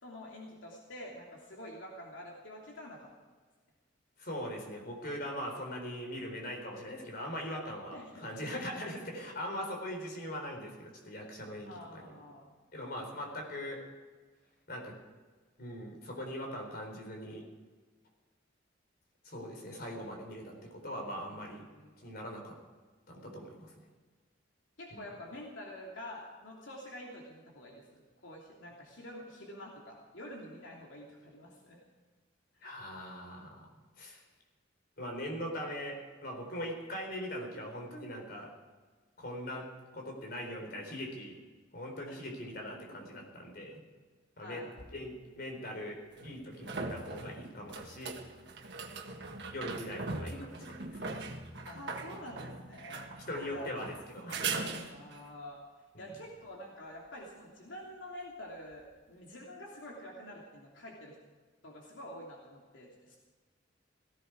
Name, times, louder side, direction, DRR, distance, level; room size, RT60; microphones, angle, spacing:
voice 1, 0.0-3.1 7.9-8.3 11.7-12.5 21.7-21.9 24.8-31.8 42.1-42.2 44.4-44.7 51.7-53.1 53.4-53.7 54.9-55.6 56.0-61.1 61.6-63.2, left 1 dB, 75° left, -2 dB, 3.0 m, -47 dB
voice 2, 4.2-12.2 12.7-13.8 14.7-14.9 15.6-17.4 19.2-21.6 22.0-22.6 23.1-23.7 24.9-25.1 32.6-33.7 34.0-34.2 35.0-38.5 39.2-39.7 39.9-41.4 41.7-43.8 44.4-44.7 44.9-48.2 49.5-51.2 53.3-54.8 55.9-56.1, equal, 50° left, 1 dB, 4.2 m, -41 dB
sound 1, 44.8-44.9 46.2-55.3 58.7-58.8, right 4 dB, 60° right, 1.7 m, -40 dB
18.0 x 16.0 x 4.8 m, 1.4 s
head